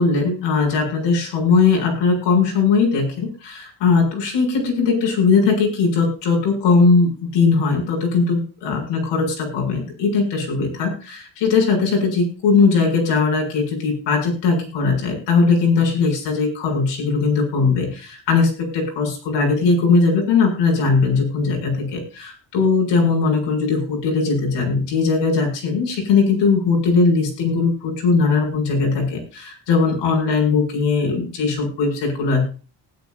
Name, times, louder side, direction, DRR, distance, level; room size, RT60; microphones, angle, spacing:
voice 1, 0.0-32.4, left 4 dB, 75° left, 2 dB, 7.2 m, -19 dB
19.0 x 10.5 x 2.7 m, 0.35 s
cardioid pair, 150°, 43 cm